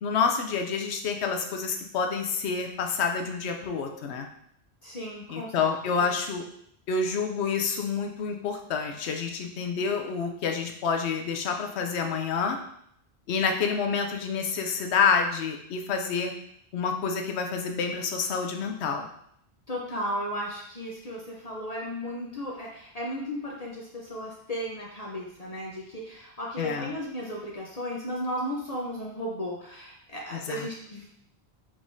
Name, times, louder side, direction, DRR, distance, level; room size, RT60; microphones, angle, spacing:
voice 1, 0.0-4.3 5.3-6.4 6.9-12.6 13.3-16.3 16.7-19.1 26.6-26.9 30.3-30.7, left 5 dB, 80° left, 4 dB, 0.9 m, -28 dB
voice 2, 4.8-5.5 6.0-6.1 19.7-31.1, equal, 40° left, -4 dB, 0.8 m, -35 dB
5.0 x 3.6 x 2.6 m, 0.70 s
omnidirectional pair, 1.1 m